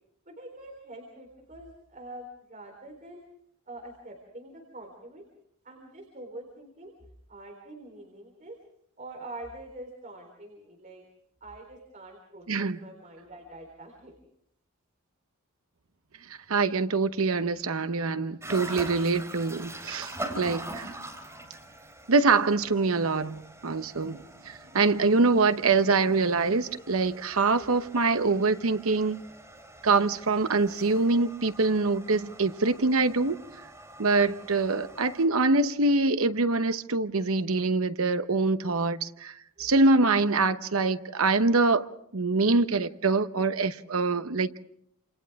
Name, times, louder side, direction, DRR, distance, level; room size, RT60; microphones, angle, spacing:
voice 1, 0.3-3.2 3.7-5.2 5.6-6.9 7.3-8.6 9.0-11.0 11.4-14.2 27.6-27.9 39.6-39.7, right 1 dB, 40° right, 3.9 m, -45 dB
voice 2, 12.5-12.8 16.5-20.9 22.1-29.2 29.8-33.4 34.0-41.9 42.1-44.5, right 3 dB, 80° right, 1.0 m, -24 dB
sound 1, 18.4-35.3, right 1 dB, 15° right, 3.9 m, -44 dB
29.0 x 27.5 x 3.6 m
head